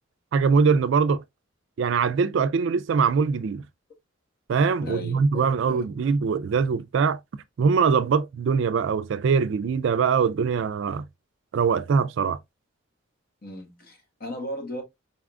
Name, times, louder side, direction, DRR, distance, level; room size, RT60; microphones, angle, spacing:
voice 1, 0.3-1.2 1.8-3.6 4.5-7.2 7.6-11.0 11.5-12.4, right 5 dB, 60° right, 0.3 m, -22 dB
voice 2, 4.8-5.8 13.4-14.8, equal, 45° left, 1.2 m, -36 dB
4.0 x 3.6 x 2.2 m
head